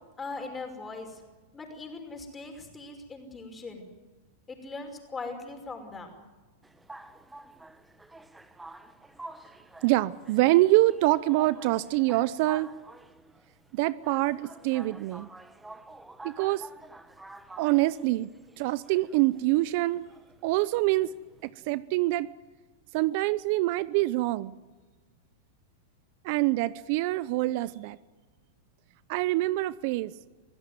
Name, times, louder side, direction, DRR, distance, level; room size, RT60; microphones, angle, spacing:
voice 1, 0.2-1.2 1.5-3.9 4.5-6.1, left 3 dB, 15° left, 4 dB, 5.6 m, -40 dB
sound 1, 6.6-21.5, right 2 dB, 5° right, 1.4 m, -49 dB
voice 2, 9.8-12.7 13.7-15.3 16.2-16.7 17.6-18.3 18.6-20.0 20.4-21.1 21.4-22.3 22.9-24.5 26.2-28.0 29.1-30.1, right 18 dB, 55° right, 18 dB, 0.7 m, -25 dB
25.5 x 16.0 x 9.6 m, 1.3 s
supercardioid pair, 135°, 0 cm